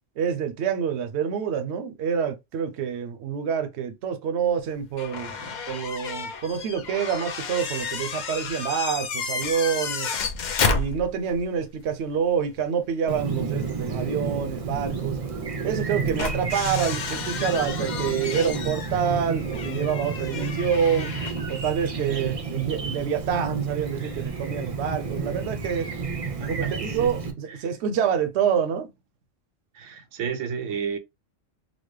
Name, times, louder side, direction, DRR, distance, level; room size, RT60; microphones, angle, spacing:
voice 1, 0.2-5.4 5.7-10.1 10.7-15.2 15.6-21.1 21.5-25.9 26.5-28.9, right 7 dB, 65° right, 0.9 m, -27 dB
sound 1, 5.0-11.4 11.8-11.9 13.9-14.0 15.8-21.6, left 5 dB, 55° left, 0.5 m, -31 dB
Chirp tweet, 13.1-27.3, right 5 dB, 40° right, 0.5 m, -31 dB
voice 2, 26.4-27.1 27.5-27.6 29.7-31.0, right 7 dB, 90° right, 1.0 m, -32 dB
4.0 x 2.1 x 3.1 m
omnidirectional pair, 1.3 m